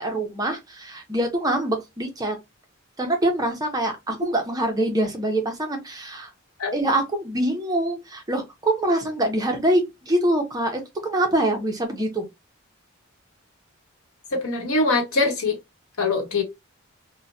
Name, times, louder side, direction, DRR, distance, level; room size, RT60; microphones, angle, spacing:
voice 1, 0.0-2.4 3.0-6.3 6.7-12.3, right 1 dB, 20° right, 0.6 m, -24 dB
voice 2, 14.3-15.6 16.0-16.4, left 3 dB, 90° left, 1.0 m, -22 dB
2.9 x 2.1 x 2.5 m
head